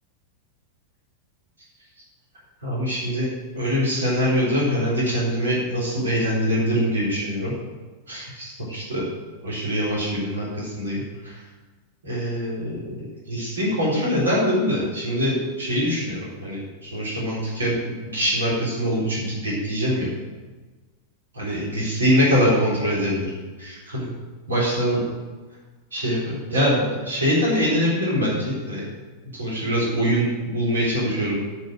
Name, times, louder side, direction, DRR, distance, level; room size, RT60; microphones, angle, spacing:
voice 1, 2.6-3.3 3.5-7.5 8.1-9.0 9.4-11.4 12.0-20.1 21.4-23.3 23.6-24.1 24.5-25.1 25.9-28.9 29.3-31.4, equal, 75° right, -6 dB, 3.9 m, -23 dB
13.0 x 5.4 x 6.4 m, 1.3 s
figure-of-eight pair, 90°, 0 cm